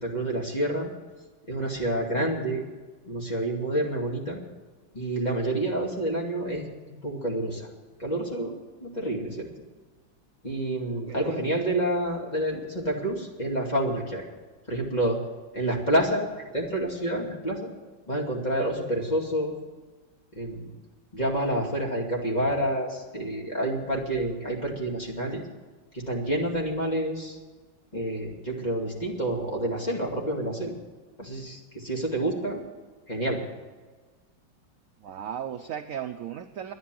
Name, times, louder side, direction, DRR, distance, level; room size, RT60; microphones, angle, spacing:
voice 1, 0.0-0.9 1.5-2.6 3.1-4.4 4.9-6.6 7.0-7.7 8.0-8.5 8.8-9.5 10.4-14.2 14.7-15.2 15.5-17.7 18.1-19.5 20.3-20.7 21.1-25.4 25.9-27.4 27.9-30.7 31.2-32.6 33.1-33.4, right 1 dB, 20° left, -2 dB, 2.5 m, -28 dB
voice 2, 11.1-11.4 35.0-36.7, right 9 dB, 70° right, 7 dB, 0.8 m, -36 dB
11.5 x 10.0 x 7.6 m, 1.3 s
omnidirectional pair, 2.1 m